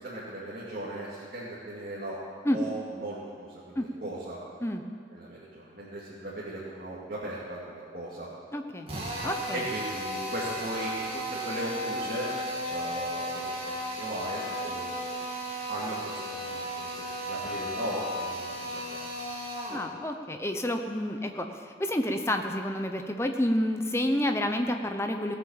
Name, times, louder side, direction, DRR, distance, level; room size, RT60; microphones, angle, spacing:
voice 1, 0.0-2.2 2.5-4.4 5.1-8.3 9.5-12.3 12.7-15.2 15.7-19.0, right 1 dB, 50° right, -8 dB, 2.5 m, -37 dB
voice 2, 8.5-8.9 9.2-9.6 19.7-25.3, left 1 dB, 15° left, 5 dB, 0.8 m, -29 dB
Drill, 8.9-19.9, equal, 30° right, 2.6 m, -35 dB
17.5 x 7.8 x 7.2 m, 2.2 s
head